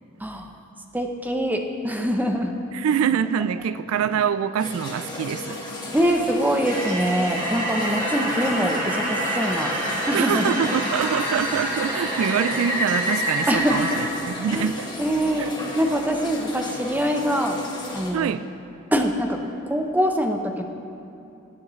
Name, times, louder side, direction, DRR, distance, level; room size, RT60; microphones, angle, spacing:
voice 1, 0.9-2.5 5.9-9.7 10.1-10.6 13.5-13.8 14.5-14.7 15.0-15.5 15.8-17.6 17.9-18.3 18.9-20.6, equal, 10° right, 3 dB, 0.7 m, -24 dB
voice 2, 2.7-5.6 10.1-14.9 15.4-15.5 18.1-18.5, right 8 dB, 85° right, 13 dB, 0.3 m, -25 dB
sound 1, 4.6-18.1, left 1 dB, 20° left, 1.5 m, -34 dB
sound 2, 6.7-14.1, equal, 40° right, 2.0 m, -27 dB
18.0 x 9.8 x 3.1 m, 2.7 s
head